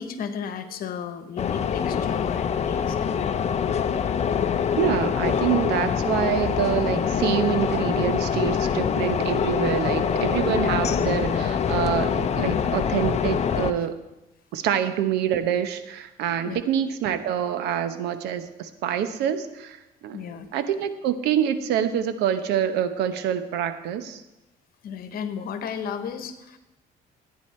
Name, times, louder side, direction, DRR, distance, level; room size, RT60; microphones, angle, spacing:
voice 1, 0.0-3.0 16.5-16.6 20.1-20.5 24.8-26.6, left 7 dB, 60° left, 10 dB, 1.2 m, -34 dB
sound 1, 1.4-13.7, left 7 dB, 40° left, 0.8 m, -24 dB
voice 2, 4.8-14.0 14.5-20.2 20.5-24.2, right 9 dB, 85° right, 11 dB, 1.0 m, -26 dB
14.0 x 9.2 x 4.4 m, 0.99 s
cardioid pair, 110°, 17 cm